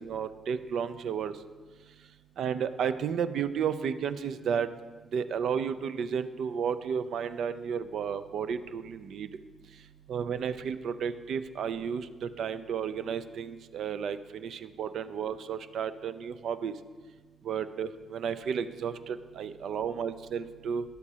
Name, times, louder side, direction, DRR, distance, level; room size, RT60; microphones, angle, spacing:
voice 1, 0.0-1.3 2.4-4.7 5.1-9.3 10.1-16.7 17.4-20.8, right 7 dB, 65° right, 12 dB, 0.4 m, -32 dB
11.0 x 8.1 x 2.8 m, 1.4 s
hypercardioid pair, 50°, 0 cm